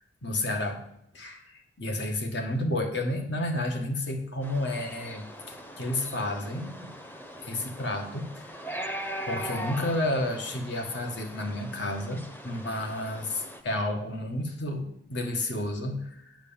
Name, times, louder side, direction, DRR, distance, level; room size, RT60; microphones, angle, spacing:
voice 1, 0.2-0.8 1.1-6.9 7.4-8.6 9.3-16.4, left 1 dB, 65° left, 4 dB, 1.6 m, -31 dB
sound 1, 4.4-13.6, equal, 10° left, 0.7 m, -40 dB
8.1 x 7.6 x 7.2 m, 0.76 s
head